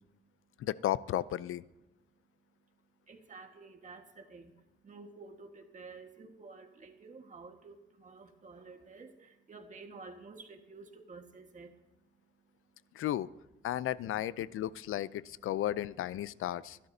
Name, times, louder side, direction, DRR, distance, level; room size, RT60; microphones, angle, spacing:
voice 1, 0.6-1.6 13.0-13.3 13.6-16.8, left 12 dB, 90° left, 19 dB, 0.4 m, -34 dB
voice 2, 3.1-12.1 12.3-12.5 12.8-13.0 14.5-14.6, right 4 dB, 35° right, 4 dB, 1.5 m, -51 dB
24.5 x 12.0 x 2.7 m, 0.99 s
wide cardioid pair, 160°, 21 cm